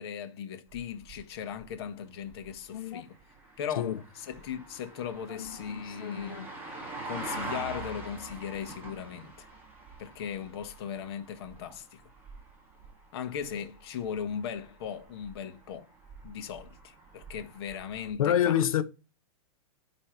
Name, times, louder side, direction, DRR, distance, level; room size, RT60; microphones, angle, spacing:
voice 1, 0.0-3.1 3.6-6.4 7.0-9.5 10.0-12.0 13.1-15.9 16.2-18.6, left 8 dB, 45° left, 1.4 m, -38 dB
sound 1, 0.7-18.1, right 2 dB, 10° right, 1.9 m, -45 dB
voice 2, 2.7-3.0 3.8-4.0 5.3-6.5 18.2-18.8, left 10 dB, 75° left, 0.9 m, -29 dB
9.9 x 3.3 x 4.5 m
hypercardioid pair, 165°, 18 cm